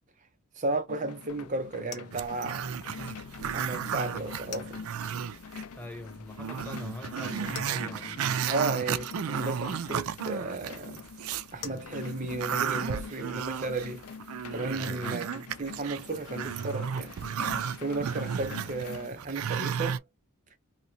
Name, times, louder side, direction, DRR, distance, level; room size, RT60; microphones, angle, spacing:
voice 1, 0.6-2.8 3.5-4.8 8.5-11.0 11.5-14.0 14.5-17.2 17.8-20.0, right 2 dB, 35° right, 0.6 m, -34 dB
sound 1, 0.9-19.1, left 5 dB, 90° left, 0.4 m, -45 dB
sound 2, 1.3-14.9, left 5 dB, 50° left, 0.8 m, -51 dB
Growling, 2.1-5.6 6.0-6.1 6.4-11.5 11.9-20.0, right 8 dB, 80° right, 0.4 m, -34 dB
voice 2, 5.8-8.3 14.8-15.2, left 1 dB, 10° left, 0.4 m, -43 dB
2.9 x 2.8 x 2.6 m
head